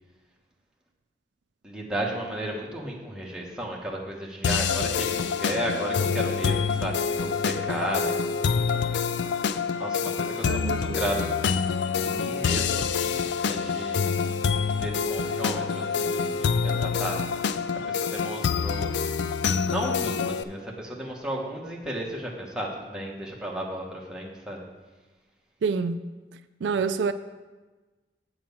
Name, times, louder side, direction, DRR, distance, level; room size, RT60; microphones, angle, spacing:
voice 1, 1.6-8.9 9.8-11.3 11.9-14.2 14.8-17.2 17.7-18.9 19.7-24.6, right 1 dB, 5° right, 1.3 m, -34 dB
sound 1, 4.4-20.4, left 6 dB, 80° left, 0.4 m, -26 dB
voice 2, 10.5-11.0 25.6-26.0 26.6-27.1, right 5 dB, 90° right, 0.4 m, -27 dB
7.7 x 4.8 x 7.1 m
head